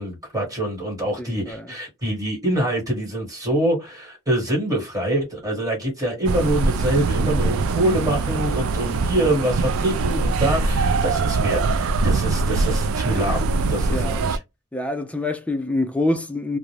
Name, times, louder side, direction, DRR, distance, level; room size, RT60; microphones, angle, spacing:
voice 1, 0.0-14.4, right 1 dB, 15° right, 1.3 m, -25 dB
voice 2, 1.2-1.7 13.9-14.3 14.7-16.6, left 2 dB, 5° left, 0.3 m, -26 dB
sound 1, 6.2-14.4, right 3 dB, 80° right, 0.3 m, -22 dB
2.4 x 2.1 x 3.1 m
head